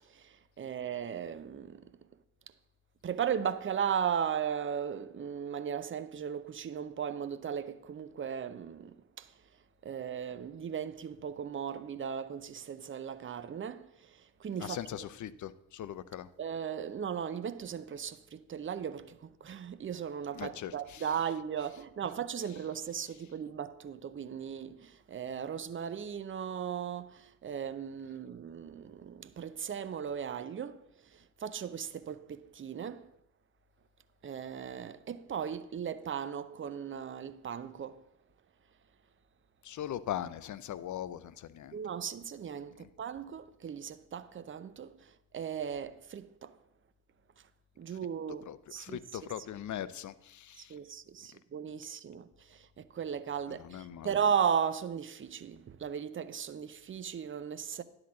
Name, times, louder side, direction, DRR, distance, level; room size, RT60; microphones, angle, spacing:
voice 1, 0.1-1.9 3.0-9.3 9.8-14.8 16.4-33.1 34.2-38.0 41.7-46.6 47.8-49.0 50.6-57.8, right 8 dB, 25° right, 0.6 m, -37 dB
voice 2, 14.6-16.3 20.3-21.4 22.4-22.6 39.6-41.8 42.8-42.9 48.4-50.7 53.5-54.1, left 11 dB, 40° left, 0.6 m, -41 dB
10.5 x 3.9 x 7.0 m
hypercardioid pair, 45°, 46 cm